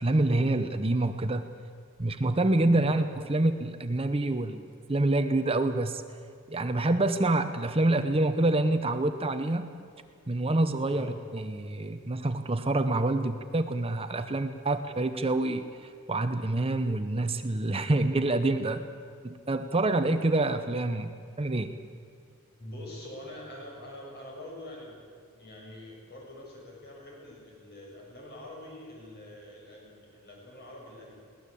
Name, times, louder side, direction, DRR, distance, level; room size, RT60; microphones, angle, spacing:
voice 1, 0.0-1.5 2.0-4.6 4.9-6.0 6.5-9.7 10.3-15.6 16.1-18.8 19.2-21.7, right 2 dB, 25° right, 8 dB, 0.9 m, -27 dB
voice 2, 22.6-25.0 25.3-31.1, left 1 dB, 50° left, -2 dB, 7.6 m, -45 dB
22.0 x 18.0 x 8.5 m, 2.3 s
head